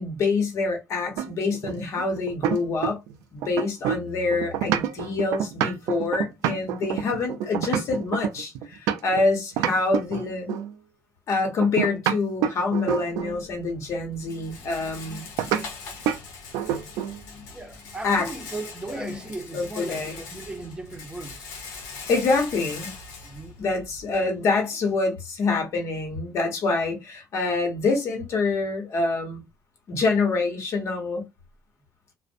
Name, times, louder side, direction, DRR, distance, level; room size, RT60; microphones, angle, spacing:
voice 1, 0.0-3.0 3.3-10.6 11.3-15.2 17.2-17.4 18.0-18.3 18.9-19.2 19.5-20.2 22.1-22.9 23.6-29.4 29.9-31.2, left 3 dB, 65° left, 1.0 m, -26 dB
sound 1, 1.2-3.1 3.4-9.2 9.6-10.7 11.6-13.4 15.4-15.6 16.1-16.2 16.5-17.2, right 10 dB, 90° right, 0.3 m, -27 dB
Rattle, 13.1-24.2, left 4 dB, 90° left, 0.7 m, -42 dB
voice 2, 17.5-21.5 23.2-23.6, right 2 dB, 15° right, 0.7 m, -37 dB
2.5 x 2.0 x 2.5 m
supercardioid pair, 80°, 5 cm